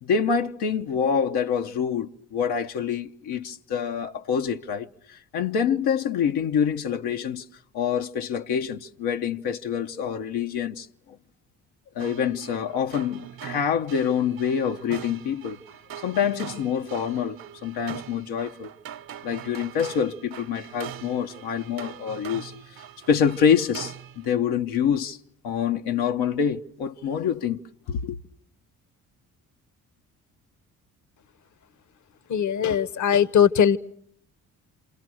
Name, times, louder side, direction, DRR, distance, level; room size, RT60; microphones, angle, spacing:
voice 1, 0.0-7.4 7.7-10.9 11.9-15.6 16.0-18.7 19.2-25.2 25.4-27.6 27.9-28.2, left 7 dB, 75° left, 1.0 m, -26 dB
sound 1, 12.0-24.3, right 10 dB, 60° right, 1.0 m, -42 dB
voice 2, 32.3-33.8, left 8 dB, 50° left, 1.0 m, -20 dB
28.5 x 27.5 x 6.3 m
hypercardioid pair, 50°, 39 cm